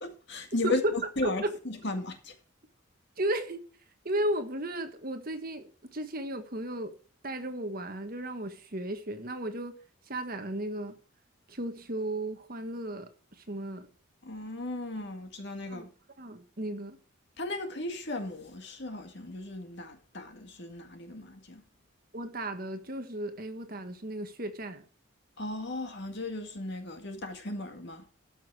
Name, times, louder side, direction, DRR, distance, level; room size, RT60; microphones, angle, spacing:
voice 1, 0.0-2.3 14.2-15.9 17.4-21.6 25.4-28.0, left 2 dB, 55° left, 2.0 m, -35 dB
voice 2, 3.2-3.6 4.0-5.7 5.9-6.9 7.2-9.8 10.1-11.0 11.5-13.1 13.5-13.9 15.7-15.9 16.2-17.0 22.1-24.8, right 1 dB, 45° right, 1.4 m, -34 dB
13.0 x 6.4 x 4.8 m
head